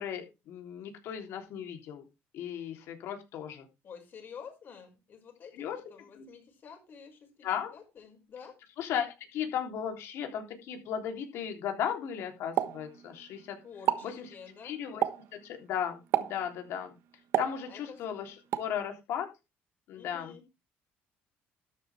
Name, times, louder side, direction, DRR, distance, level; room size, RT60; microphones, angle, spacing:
voice 1, 0.0-2.0 2.3-3.6 5.5-5.8 6.1-6.3 7.4-7.7 8.8-13.6 14.0-14.3 14.6-15.0 15.3-16.9 17.4-19.3 19.9-20.3, left 8 dB, 75° left, 4 dB, 3.4 m, -36 dB
voice 2, 3.8-8.6 13.6-14.7 17.7-18.0 19.9-20.4, left 6 dB, 50° left, 3 dB, 6.1 m, -49 dB
Explosion, 12.6-13.4 13.7-14.2 15.0-15.4 16.1-16.5 17.3-18.0 18.5-18.8, right 12 dB, 75° right, 1.2 m, -30 dB
13.0 x 9.5 x 3.5 m, 0.26 s
cardioid pair, 105°, 4 cm